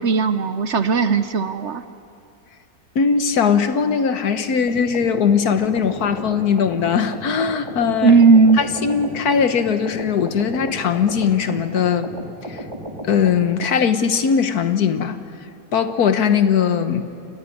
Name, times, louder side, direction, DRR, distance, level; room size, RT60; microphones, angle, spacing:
voice 1, 0.0-1.8 8.0-8.6, right 4 dB, 55° right, 11 dB, 0.9 m, -16 dB
voice 2, 2.9-8.2 8.6-12.1 12.5-12.6 13.0-15.2 15.7-17.0, left 6 dB, 80° left, 9 dB, 1.7 m, -20 dB
sound 1, 4.7-13.4, right 1 dB, 20° right, 2.7 m, -34 dB
28.0 x 15.0 x 9.9 m, 2.5 s
omnidirectional pair, 1.6 m